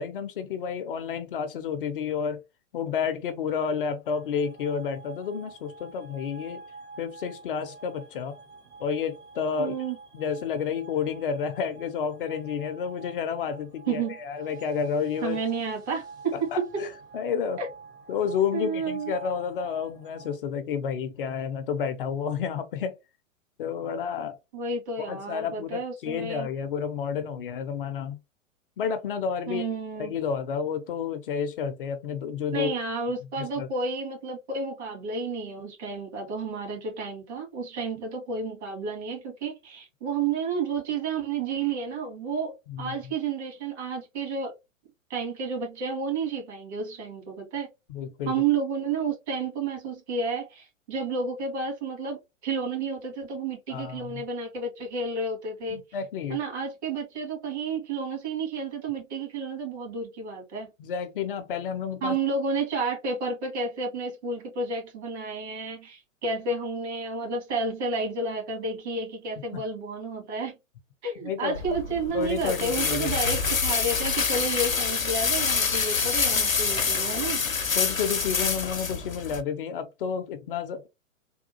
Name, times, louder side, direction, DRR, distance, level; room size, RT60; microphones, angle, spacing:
voice 1, 0.0-2.4 2.7-6.6 7.0-8.4 8.8-9.7 10.1-15.4 16.3-17.6 18.1-23.0 23.6-24.4 25.0-28.2 28.8-29.7 30.0-32.7 33.4-33.7 42.7-42.9 47.9-48.3 53.7-54.2 55.7-56.4 60.8-62.2 69.5-69.6 71.2-71.6 72.1-73.2 77.7-80.9, left 6 dB, 45° left, 0.5 m, -30 dB
sound 1, 4.0-20.4, right 4 dB, 10° right, 0.4 m, -47 dB
voice 2, 9.6-10.0 13.9-14.2 15.2-16.8 17.6-17.7 18.5-19.1 24.5-26.5 29.5-30.1 32.5-44.5 45.1-47.7 48.3-55.8 56.3-60.7 62.0-70.6 71.0-77.4, right 4 dB, 55° right, 2.0 m, -31 dB
sound 2, 71.6-79.4, left 5 dB, 90° left, 0.6 m, -26 dB
3.5 x 2.3 x 2.7 m
figure-of-eight pair, 110°, 39 cm